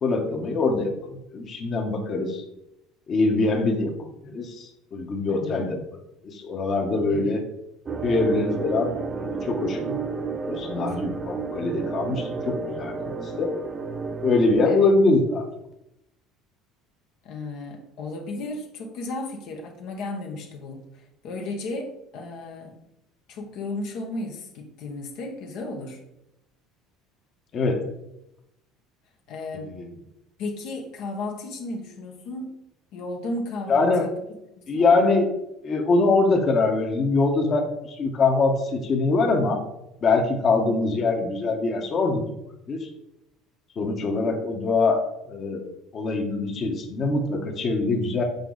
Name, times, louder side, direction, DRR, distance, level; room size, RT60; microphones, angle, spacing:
voice 1, 0.0-2.4 3.1-3.9 4.2-5.8 6.2-7.4 8.0-10.0 10.5-13.6 14.2-15.4 27.5-27.8 29.6-29.9 33.7-34.1 34.7-35.3 35.6-39.6 40.0-42.3 42.7-42.9 43.8-45.6 45.9-48.2, left 3 dB, 40° left, 2 dB, 1.1 m, -23 dB
voice 2, 5.3-5.7 7.1-7.4 14.6-14.9 17.2-22.8 23.3-26.0 29.3-29.7 30.4-32.5 32.9-34.1 34.6-34.9, left 2 dB, 65° left, 2 dB, 1.1 m, -34 dB
sound 1, 7.9-14.5, right 4 dB, 30° right, 0.8 m, -31 dB
6.8 x 4.7 x 3.9 m, 0.85 s
cardioid pair, 125°, 0 cm